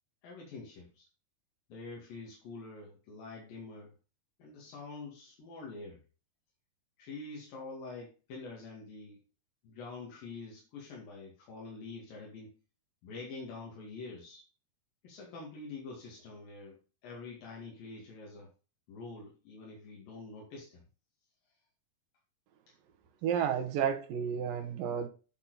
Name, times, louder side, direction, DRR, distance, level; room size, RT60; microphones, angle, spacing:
voice 1, 0.2-1.1 1.7-4.0 4.4-6.0 7.0-9.2 9.6-12.6 13.0-14.5 15.0-18.5 18.9-20.9 22.7-22.8, left 3 dB, 90° left, 3.9 m, -46 dB
voice 2, 23.2-25.1, right 8 dB, 80° right, 2.9 m, -31 dB
11.5 x 4.3 x 4.0 m
omnidirectional pair, 3.9 m